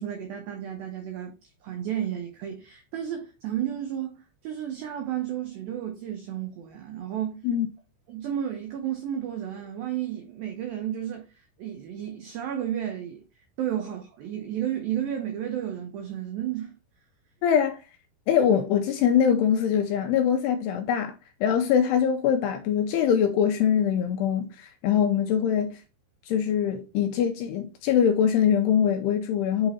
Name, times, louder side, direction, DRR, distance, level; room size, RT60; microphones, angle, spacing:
voice 1, 0.0-1.3 1.6-7.4 8.1-16.7, right 10 dB, 85° right, 2.0 m, -32 dB
voice 2, 17.4-17.8 18.3-25.8 26.3-29.7, left 8 dB, 85° left, 2.4 m, -23 dB
8.5 x 3.2 x 4.1 m
omnidirectional pair, 5.3 m